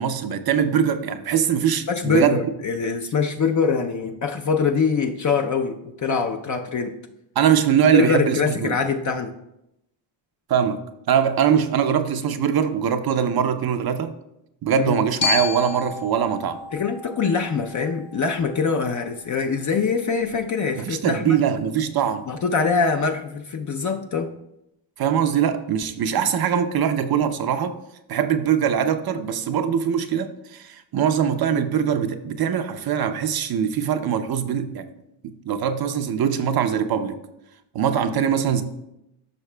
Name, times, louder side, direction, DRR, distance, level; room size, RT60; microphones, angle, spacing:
voice 1, 0.0-2.4 7.4-8.8 10.5-10.8 11.1-14.1 14.6-16.6 20.8-22.3 25.0-27.8 28.1-34.9 35.2-37.2 37.7-38.6, right 8 dB, 50° right, 9 dB, 0.6 m, -22 dB
voice 2, 1.9-7.0 7.9-9.3 14.8-15.0 16.7-21.4 22.3-24.3, left 5 dB, 40° left, 4 dB, 0.6 m, -23 dB
Glockenspiel, 15.2-19.3, left 6 dB, 60° left, 1.2 m, -31 dB
13.0 x 5.7 x 2.2 m, 0.85 s
cardioid pair, 110°, 49 cm